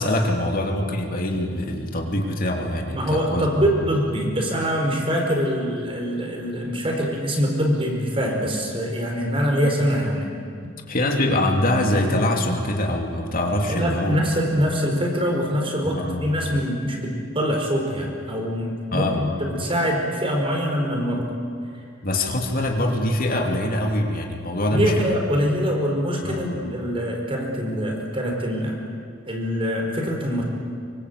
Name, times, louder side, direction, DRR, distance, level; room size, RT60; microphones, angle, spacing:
voice 1, 0.0-3.6 10.9-14.2 15.8-16.3 18.9-19.2 22.0-25.1 26.2-26.5, left 1 dB, 50° left, 2 dB, 3.0 m, -24 dB
voice 2, 2.9-10.3 13.7-21.3 24.7-28.8 29.3-30.4, equal, 30° right, 1 dB, 5.0 m, -24 dB
25.0 x 24.5 x 8.3 m, 2.3 s
head